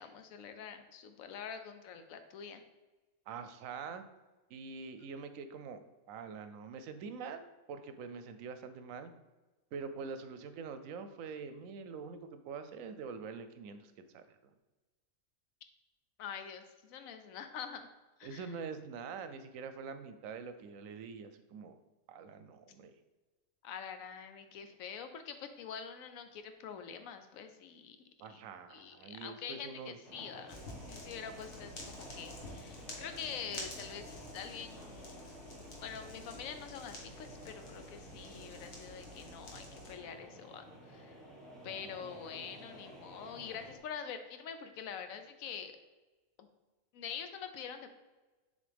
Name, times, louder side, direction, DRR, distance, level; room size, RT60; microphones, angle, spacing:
voice 1, 0.0-2.6 16.2-17.9 18.2-18.5 23.6-28.0 28.3-28.4 28.7-35.5 35.8-41.2 41.6-45.7 46.4-46.5 46.9-47.9, left 7 dB, 90° left, 8 dB, 1.1 m, -45 dB
voice 2, 3.3-4.0 4.5-5.8 6.1-7.4 7.7-9.1 9.7-14.4 18.2-21.8 22.1-22.9 28.2-30.0 38.1-38.6 41.6-42.0, right 5 dB, 80° right, 10 dB, 1.0 m, -45 dB
sound 1, 30.0-43.8, right 1 dB, ahead, 1.3 m, -52 dB
sound 2, 30.5-39.9, left 2 dB, 60° left, 1.5 m, -50 dB
7.3 x 3.9 x 3.4 m, 1.2 s
omnidirectional pair, 1.4 m